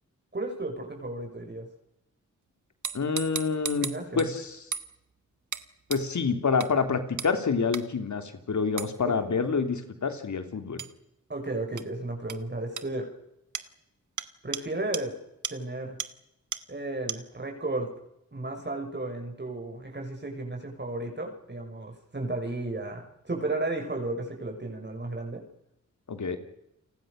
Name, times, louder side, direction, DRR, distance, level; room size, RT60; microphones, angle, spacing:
voice 1, 0.3-1.7 3.8-4.3 9.0-9.2 11.3-13.1 14.4-15.2 15.5-16.0 16.7-17.9 18.3-25.4, right 2 dB, 35° right, 2 dB, 6.2 m, -34 dB
sound 1, 2.8-4.3 4.7-4.9 5.5-5.6 5.9-6.0 6.6-6.7 7.2-7.3 7.7-7.8 8.8-8.9 10.8-10.9 11.8-11.9 12.3-12.4 12.8-12.9 13.5-13.7 14.2-14.3 14.5-14.6 14.9-15.0 15.4-15.5 16.0-16.1 16.5-16.6 17.1-17.2, right 7 dB, 75° right, 1.4 m, -34 dB
voice 2, 2.9-4.6 5.9-10.8 26.1-26.4, left 5 dB, 70° left, 8 dB, 3.3 m, -27 dB
29.5 x 20.0 x 6.6 m, 0.85 s
cardioid pair, 55°, 30 cm